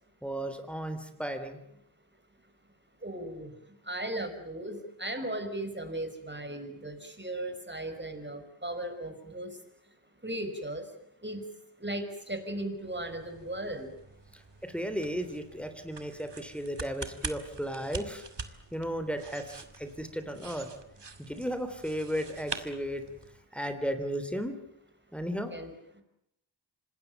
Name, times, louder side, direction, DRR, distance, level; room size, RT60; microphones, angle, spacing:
voice 1, 0.2-1.6 14.3-18.2 18.7-20.7 21.2-23.0 23.5-24.6 25.1-25.5, equal, ahead, 8 dB, 3.3 m, -35 dB
voice 2, 3.0-9.6 10.2-10.9 11.2-11.5 11.8-13.9 25.5-26.0, right 1 dB, 25° right, 7 dB, 5.5 m, -37 dB
sound 1, 12.6-23.4, right 3 dB, 60° right, 2.3 m, -45 dB
26.5 x 19.5 x 9.2 m, 0.77 s
wide cardioid pair, 45°, 46 cm